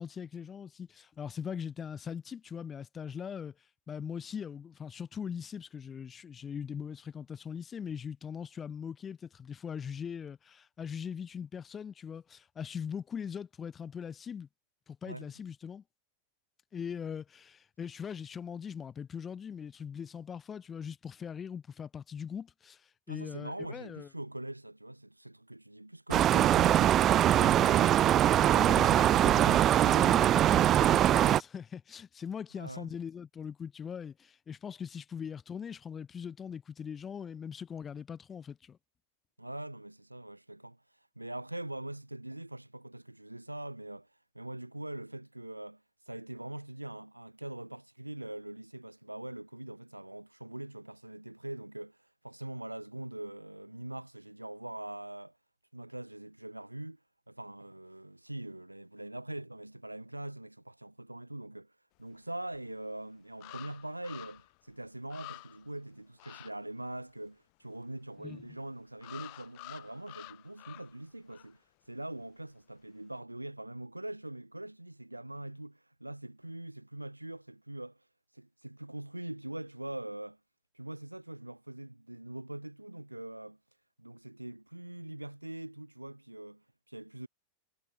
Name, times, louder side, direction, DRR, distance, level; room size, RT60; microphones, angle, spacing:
voice 1, 0.0-3.5 3.9-14.5 14.9-15.8 16.7-22.8 23.1-24.1 28.6-38.8 68.2-68.4, left 7 dB, 20° left, 4.1 m, -41 dB
voice 2, 23.1-30.3 32.6-32.9 39.4-40.8 41.2-44.1 44.3-45.8 46.1-52.0 52.2-55.3 55.7-57.0 57.3-61.7 62.0-71.6 71.9-78.0 78.3-80.4 80.7-83.6 84.0-87.3, right 1 dB, 85° right, 7.5 m, -43 dB
sound 1, 26.1-31.4, right 11 dB, 30° right, 0.5 m, -23 dB
sound 2, 62.5-62.6 63.4-64.6 64.8-64.9 65.1-65.7 66.2-66.5 69.0-71.0 71.3-71.5, left 40 dB or more, 45° left, 3.7 m, -49 dB
figure-of-eight pair, 90°, 0 cm